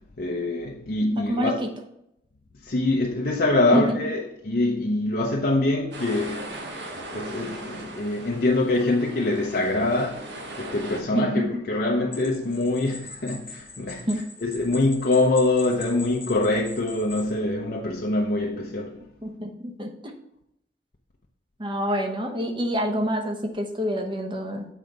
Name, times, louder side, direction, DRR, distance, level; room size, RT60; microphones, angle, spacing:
voice 1, 0.2-1.5 2.6-6.5 7.1-14.1 14.4-19.0, left 2 dB, 55° left, 0.7 m, -24 dB
voice 2, 1.1-1.7 3.7-3.8 11.1-11.6 14.1-14.2 19.2-20.1 21.6-24.7, equal, 25° right, 0.9 m, -27 dB
sound 1, 5.9-11.0, right 1 dB, 80° right, 1.4 m, -38 dB
sound 2, 12.1-17.3, left 3 dB, 15° left, 1.1 m, -42 dB
7.6 x 4.1 x 5.2 m
head